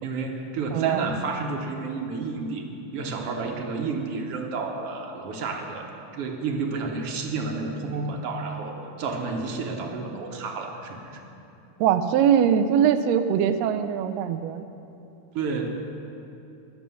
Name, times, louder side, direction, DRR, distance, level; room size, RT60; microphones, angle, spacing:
voice 1, 0.0-5.9 6.1-11.2 15.3-15.7, right 4 dB, 60° right, 2 dB, 1.8 m, -30 dB
voice 2, 0.7-1.0 11.8-14.6, right 8 dB, 80° right, 9 dB, 1.5 m, -22 dB
20.5 x 6.9 x 7.0 m, 2.9 s
omnidirectional pair, 3.6 m